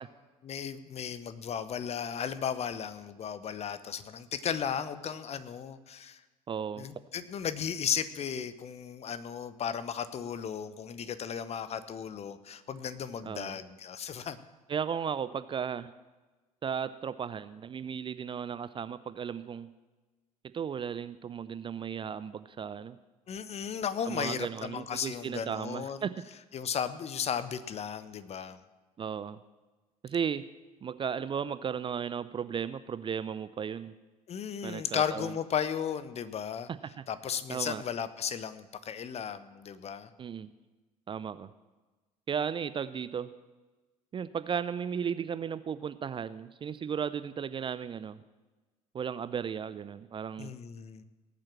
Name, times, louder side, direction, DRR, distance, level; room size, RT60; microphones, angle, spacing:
voice 1, 0.4-6.2 6.8-14.4 23.3-26.0 26.5-28.6 34.3-36.7 37.1-40.1 50.4-51.0, left 8 dB, 35° left, 14 dB, 0.9 m, -35 dB
voice 2, 6.5-6.9 13.2-13.6 14.7-15.9 16.6-19.7 20.4-23.0 24.1-26.2 29.0-29.4 30.0-30.5 30.8-33.9 34.6-35.3 36.8-37.0 37.5-37.8 40.2-40.5 41.1-41.5 42.3-43.3 44.1-48.2 48.9-50.5, right 7 dB, 25° right, 15 dB, 0.5 m, -35 dB
18.0 x 7.5 x 7.4 m, 1.2 s
figure-of-eight pair, 60°, 19 cm